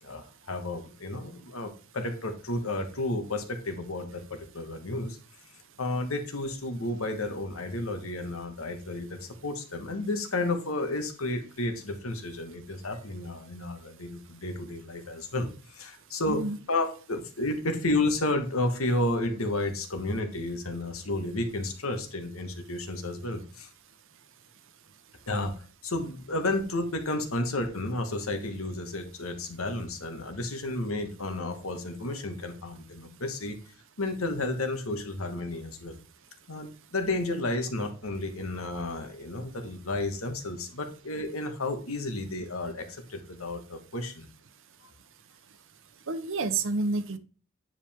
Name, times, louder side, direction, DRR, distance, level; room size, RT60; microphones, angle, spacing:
voice 1, 0.0-5.2 5.8-16.4 16.7-23.7 25.3-25.5 25.8-33.6 34.0-36.0 36.5-44.3, left 2 dB, 75° left, 6 dB, 1.5 m, -32 dB
voice 2, 16.3-16.6 46.1-47.2, right 3 dB, 65° right, 11 dB, 0.9 m, -29 dB
9.5 x 5.0 x 3.6 m, 0.38 s
head